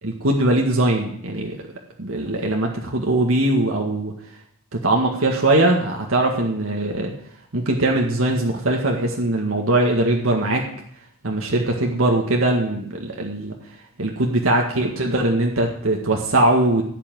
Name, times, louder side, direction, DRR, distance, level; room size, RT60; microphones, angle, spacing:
voice 1, 0.0-1.6 2.0-4.1 4.7-7.1 7.5-10.6 11.2-13.5 14.0-16.8, right 1 dB, 85° right, 0 dB, 1.9 m, -21 dB
16.0 x 5.9 x 9.2 m, 0.68 s
head